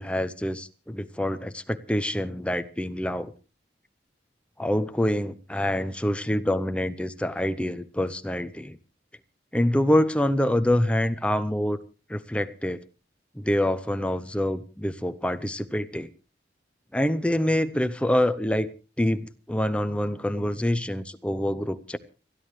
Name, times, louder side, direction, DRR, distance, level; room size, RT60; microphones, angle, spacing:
voice 1, 0.0-3.3 4.6-8.8 9.5-11.8 12.1-12.8 13.4-16.1 16.9-18.7 19.0-22.0, left 1 dB, 5° left, 0.7 m, -26 dB
30.0 x 11.0 x 3.2 m
head